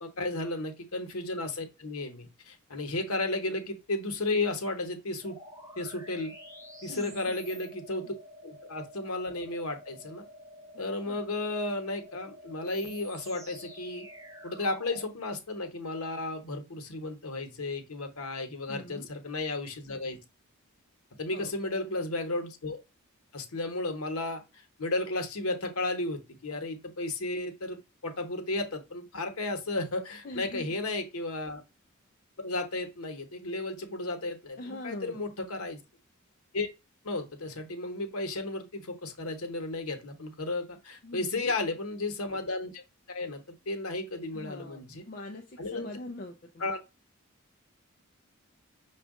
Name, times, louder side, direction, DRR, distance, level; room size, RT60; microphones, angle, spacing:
voice 1, 0.0-5.4 5.8-6.3 6.8-8.1 8.4-10.3 10.8-14.1 14.4-20.2 21.2-22.8 23.3-24.4 24.8-31.6 32.4-35.8 36.5-36.7 37.0-42.8 43.1-45.0 45.6-45.9 46.6-46.8, left 2 dB, 85° left, 1.0 m, -34 dB
sound 1, 5.2-15.1, equal, 15° right, 0.7 m, -49 dB
voice 2, 6.9-7.4 8.0-8.2 11.1-11.2 18.7-19.1 21.3-21.5 30.2-30.8 34.6-35.3 41.0-41.5 44.3-46.7, left 1 dB, 40° left, 0.4 m, -43 dB
6.1 x 2.4 x 3.6 m
head